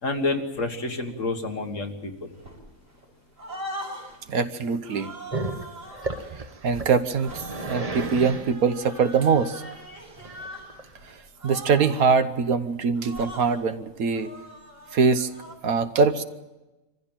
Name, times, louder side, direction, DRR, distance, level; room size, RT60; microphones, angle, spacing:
voice 1, 0.0-2.3, left 3 dB, 60° left, 4 dB, 2.0 m, -29 dB
sound 1, 2.4-3.1 3.4-4.2 4.8-6.3 7.1-10.7 10.9-11.1 11.4-12.1 13.0-13.6 14.1-15.5, equal, 60° right, 6.6 m, -41 dB
voice 2, 4.3-5.1 6.6-9.6 11.4-14.3 14.9-15.3 15.6-16.2, right 5 dB, 75° right, 10 dB, 1.5 m, -23 dB
Growling, 5.3-11.2, right 2 dB, 30° right, 1.0 m, -34 dB
24.5 x 15.0 x 8.9 m, 1.1 s
omnidirectional pair, 1.5 m